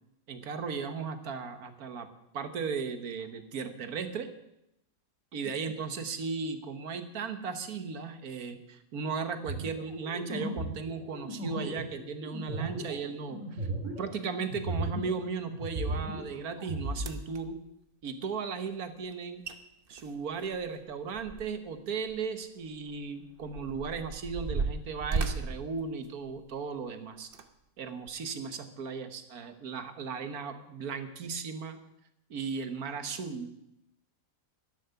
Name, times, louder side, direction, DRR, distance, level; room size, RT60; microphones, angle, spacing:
voice 1, 0.3-2.1 2.3-4.3 5.3-17.6 18.0-19.4 19.9-27.3 27.8-31.8 32.3-33.5, right 5 dB, 90° right, 9 dB, 1.7 m, -36 dB
sound 1, 9.5-15.2 15.5-17.1, right 2 dB, 60° right, 2.8 m, -36 dB
sound 2, 16.5-16.6 17.0-17.4 19.1-19.2 19.4-19.6 19.9-21.7 22.0-22.2 22.9-26.6 27.2-27.5 28.1-28.2, right 4 dB, 45° right, 1.0 m, -35 dB
12.0 x 10.5 x 6.9 m, 0.84 s
omnidirectional pair, 1.5 m